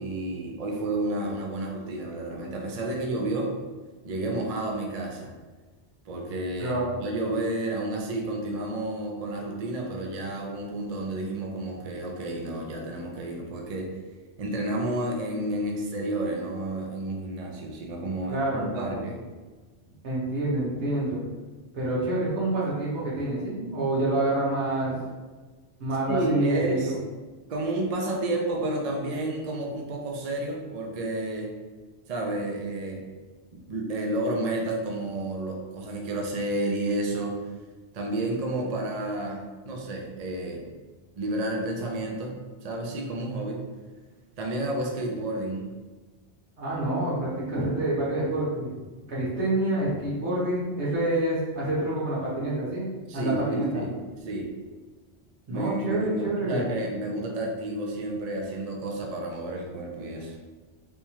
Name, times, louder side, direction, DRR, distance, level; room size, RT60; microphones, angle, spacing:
voice 1, 0.0-3.5 4.0-5.3 6.1-13.9 14.4-19.2 26.1-26.9 27.5-31.5 32.1-33.0 33.5-37.4 37.9-40.6 41.2-42.4 42.6-43.6 44.4-45.6 53.1-53.9 54.3-54.5 55.5-60.4, right 1 dB, 50° right, 1 dB, 0.5 m, -31 dB
voice 2, 6.6-7.0 18.3-19.0 20.0-21.2 21.7-25.0 25.8-27.0 46.6-48.7 49.1-52.8 53.1-53.8 55.5-56.6, right 1 dB, 75° right, -7 dB, 1.6 m, -27 dB
3.5 x 2.9 x 2.9 m, 1.3 s
omnidirectional pair, 1.2 m